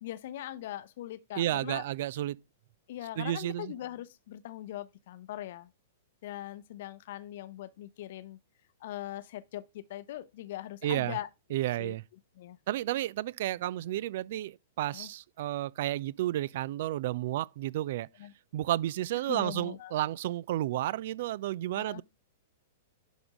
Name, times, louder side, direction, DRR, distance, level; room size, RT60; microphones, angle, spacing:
voice 1, 0.0-1.8 2.9-5.7 6.2-8.4 8.8-11.3 11.8-11.9 12.4-12.6 14.9-15.1 18.2-18.3 19.3-19.9 21.8-22.0, left 13 dB, 55° left, 0.7 m, -41 dB
voice 2, 1.4-2.4 3.2-3.7 10.8-11.2 11.5-12.0 12.7-18.1 18.5-22.0, right 14 dB, 55° right, 0.3 m, -32 dB
10.5 x 3.6 x 3.7 m
figure-of-eight pair, 105°, 0 cm